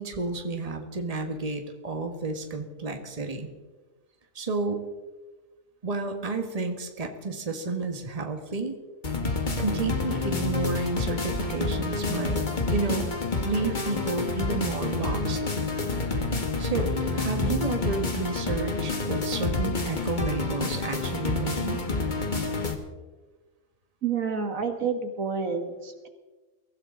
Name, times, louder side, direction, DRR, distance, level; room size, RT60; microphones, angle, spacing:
voice 1, 0.0-3.5 4.3-4.9 5.8-8.8 9.6-12.4 12.7-13.1 13.4-15.4 16.6-21.8, right 3 dB, 25° right, 4 dB, 1.6 m, -31 dB
sound 1, 9.0-22.7, left 3 dB, 35° left, 1.8 m, -28 dB
voice 2, 24.0-26.1, right 6 dB, 75° right, 6 dB, 2.0 m, -29 dB
23.0 x 16.0 x 3.9 m, 1.2 s
omnidirectional pair, 1.4 m